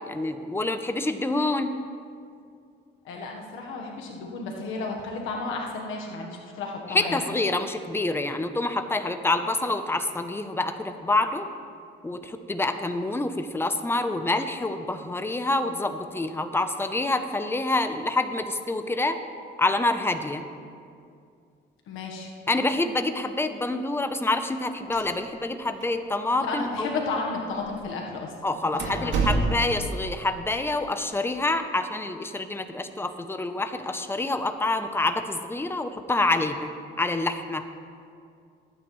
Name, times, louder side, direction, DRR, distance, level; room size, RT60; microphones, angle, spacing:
voice 1, 0.1-1.8 6.9-11.5 12.0-19.2 19.6-20.5 22.5-26.9 28.4-36.7 37.0-37.7, left 2 dB, 10° left, 8 dB, 0.8 m, -27 dB
voice 2, 3.0-7.2 21.9-22.3 26.5-29.2 29.5-29.6, left 3 dB, 90° left, 0 dB, 1.4 m, -33 dB
sound 1, 24.8-25.6 25.8-25.9 26.7-26.8 27.5-27.7 28.2-28.3 28.8-29.9, right 3 dB, 75° right, 2.1 m, -27 dB
19.5 x 9.2 x 3.3 m, 2.3 s
cardioid pair, 90°, 20 cm